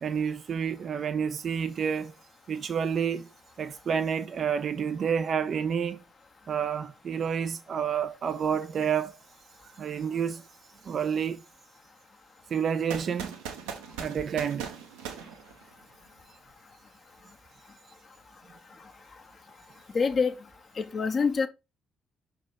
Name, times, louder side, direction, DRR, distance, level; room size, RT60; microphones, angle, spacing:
voice 1, 0.0-2.1 2.5-3.3 3.6-6.0 6.5-9.2 9.8-10.4 10.9-11.4 12.5-13.4 14.0-14.7, right 7 dB, 50° right, 0.5 m, -29 dB
sound 1, 12.9-16.1, right 7 dB, 70° right, 1.0 m, -40 dB
voice 2, 19.9-20.3 20.8-21.5, left 5 dB, 40° left, 1.1 m, -25 dB
6.1 x 4.4 x 5.0 m
figure-of-eight pair, 40°, 0 cm